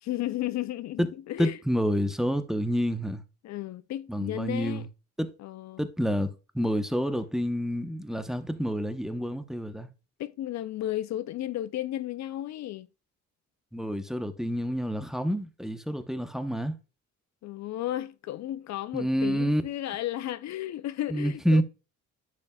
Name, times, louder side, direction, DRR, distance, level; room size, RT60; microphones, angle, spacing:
voice 1, 0.0-1.6 3.4-4.9 5.4-5.9 10.2-12.9 17.4-21.6, left 13 dB, 65° left, 0.5 m, -34 dB
voice 2, 1.4-3.2 4.1-4.9 5.2-5.3 5.8-9.9 13.7-16.8 18.9-19.6 21.1-21.6, equal, ahead, 0.9 m, -28 dB
10.5 x 5.2 x 2.3 m
cardioid pair, 90°, 30 cm